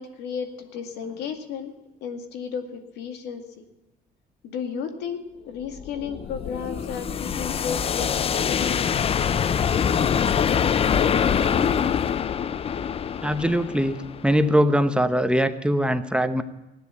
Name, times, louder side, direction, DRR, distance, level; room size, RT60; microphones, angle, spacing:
voice 1, 0.0-1.7 2.0-3.4 4.4-5.2 5.5-9.0, left 6 dB, 85° left, 6 dB, 2.2 m, -33 dB
sound 1, 5.6-14.6, left 7 dB, 35° left, 0.5 m, -24 dB
voice 2, 13.2-16.4, equal, 5° right, 9 dB, 0.9 m, -22 dB
16.0 x 10.5 x 8.2 m, 0.99 s
cardioid pair, 110°, 17 cm